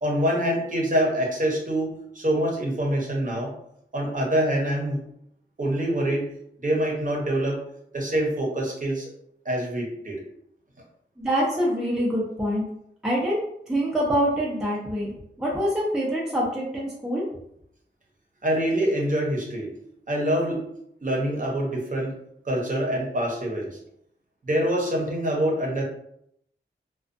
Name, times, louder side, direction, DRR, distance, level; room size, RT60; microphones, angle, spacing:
voice 1, 0.0-3.5 3.9-5.0 5.6-6.3 6.6-7.6 7.9-9.1 9.5-10.2 18.4-19.7 20.1-20.7 21.0-22.1 22.5-23.7 24.4-25.8, right 1 dB, 45° right, -1 dB, 0.8 m, -25 dB
voice 2, 11.2-12.6 13.0-13.4 13.7-15.1 15.4-17.3, equal, 5° right, -5 dB, 0.6 m, -25 dB
2.4 x 2.3 x 2.5 m, 0.73 s
cardioid pair, 60°, 19 cm